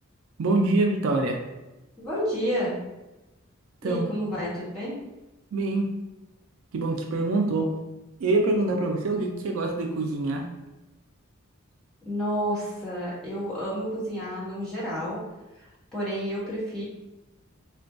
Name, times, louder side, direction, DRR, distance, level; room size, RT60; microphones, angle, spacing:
voice 1, 0.4-1.4 3.8-4.1 5.5-5.9 6.7-7.7 8.2-10.5, right 2 dB, 70° right, 2 dB, 0.4 m, -25 dB
voice 2, 2.0-2.7 3.8-5.0 12.0-15.2 15.9-16.8, equal, 5° left, -10 dB, 1.1 m, -30 dB
3.7 x 2.2 x 2.6 m, 1.0 s
head